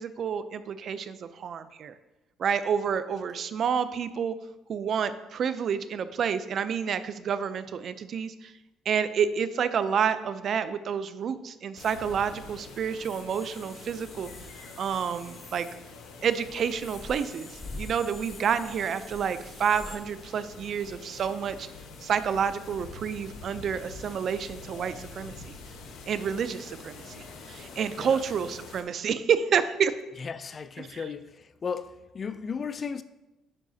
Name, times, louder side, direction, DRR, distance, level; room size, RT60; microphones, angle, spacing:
voice 1, 0.0-1.9 2.4-4.3 4.7-8.5 8.9-14.3 14.8-15.7 16.2-21.7 22.0-25.3 26.1-29.9 30.8-31.0, right 7 dB, 50° right, 0.4 m, -29 dB
sound 1, 11.8-28.8, left 3 dB, 75° left, 1.0 m, -46 dB
sound 2, 13.3-20.0, left 2 dB, 20° left, 0.9 m, -46 dB
voice 2, 30.2-33.0, left 6 dB, 35° left, 0.3 m, -35 dB
9.7 x 5.5 x 2.7 m
cardioid pair, 115°, 0 cm